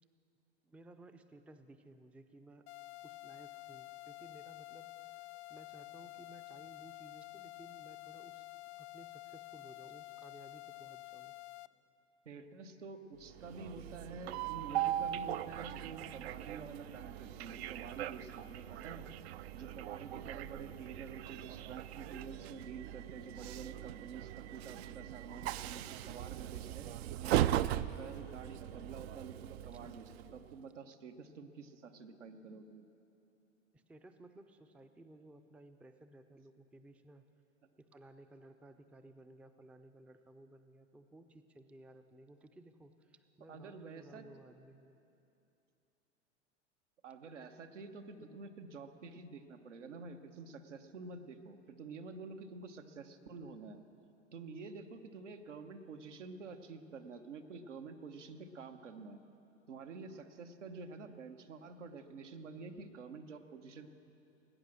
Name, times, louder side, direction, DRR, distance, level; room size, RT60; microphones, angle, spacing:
voice 1, 0.6-2.7 3.0-8.4 8.8-11.4 33.7-37.2 37.8-45.0, right 2 dB, 5° right, 8 dB, 0.4 m, -58 dB
sound 1, 2.7-11.7, left 20 dB, 65° left, 0.5 m, -50 dB
voice 2, 12.2-19.0 19.5-26.9 27.2-32.9 43.5-44.2 47.0-53.8 54.3-59.2 59.7-63.9, right 4 dB, 85° right, 6 dB, 1.1 m, -49 dB
Train, 13.3-30.5, right 12 dB, 65° right, 0.5 m, -39 dB
19.5 x 8.9 x 6.3 m, 2.8 s
hypercardioid pair, 100°, 35 cm